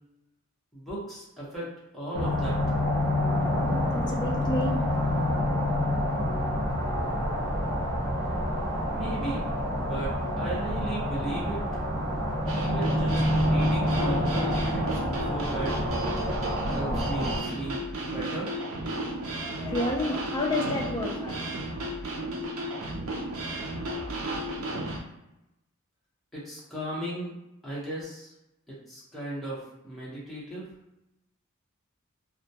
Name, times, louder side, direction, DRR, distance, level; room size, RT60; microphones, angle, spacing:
voice 1, 0.7-1.7 1.9-2.8 8.9-9.4 9.7-11.6 12.5-15.8 16.7-18.5 26.3-27.3 27.6-28.3 28.7-30.7, right 1 dB, ahead, -8 dB, 0.7 m, -36 dB
sound 1, 2.1-17.4, left 1 dB, 55° right, 0.7 m, -27 dB
voice 2, 3.9-4.9 19.0-19.1 19.4-21.3, left 1 dB, 20° left, 1 dB, 0.3 m, -30 dB
sound 2, 12.5-25.0, right 1 dB, 90° right, 0.5 m, -34 dB
2.2 x 2.1 x 2.7 m, 0.90 s
head